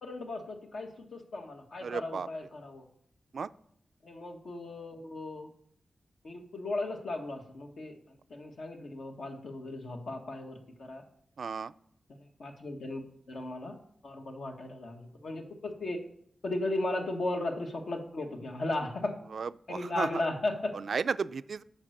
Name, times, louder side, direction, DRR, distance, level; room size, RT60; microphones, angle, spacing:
voice 1, 0.0-2.8 4.0-5.5 6.2-11.0 12.1-16.0 16.4-19.2 19.7-20.7, left 2 dB, 75° left, 2 dB, 1.4 m, -36 dB
voice 2, 1.8-2.3 3.3-3.5 11.4-11.7 19.3-20.2 20.7-21.6, right 5 dB, 75° right, 15 dB, 0.3 m, -34 dB
8.7 x 5.3 x 6.5 m, 0.67 s
cardioid pair, 65°, 0 cm